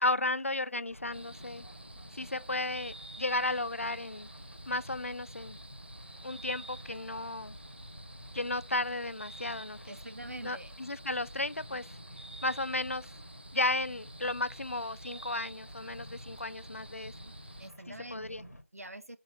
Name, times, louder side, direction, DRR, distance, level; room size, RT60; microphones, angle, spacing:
voice 1, 0.0-1.6 2.1-4.3 4.7-5.6 6.2-7.6 8.3-9.9 10.4-12.0 12.4-13.1 13.5-17.3 17.9-18.4, left 2 dB, 60° left, 0.4 m, -34 dB
sound 1, 0.9-18.6, left 1 dB, 75° left, 1.4 m, -51 dB
sound 2, 1.1-17.7, right 1 dB, 45° right, 0.6 m, -50 dB
voice 2, 9.9-10.7 17.6-19.2, right 1 dB, 70° right, 0.9 m, -45 dB
7.2 x 4.0 x 4.8 m
figure-of-eight pair, 175°, 8 cm